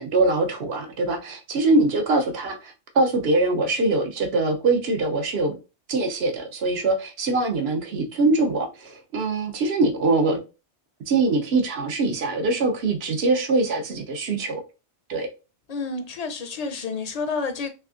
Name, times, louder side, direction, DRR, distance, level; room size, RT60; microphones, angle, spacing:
voice 1, 0.0-5.5 5.9-10.4 11.1-14.6 15.1-15.3, right 2 dB, 70° right, 1.0 m, -23 dB
voice 2, 15.7-17.7, left 4 dB, 45° left, 0.6 m, -29 dB
3.5 x 3.3 x 2.4 m
omnidirectional pair, 1.1 m